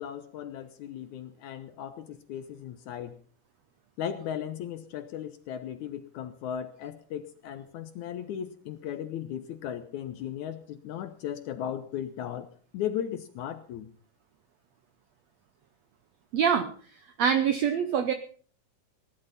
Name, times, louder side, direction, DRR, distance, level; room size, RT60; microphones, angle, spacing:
voice 1, 0.0-3.2 4.0-12.5 12.7-13.9, left 9 dB, 70° left, 10 dB, 1.9 m, -36 dB
voice 2, 16.3-16.7 17.2-18.1, right 7 dB, 75° right, 9 dB, 1.5 m, -24 dB
17.5 x 11.5 x 5.6 m, 0.43 s
omnidirectional pair, 4.1 m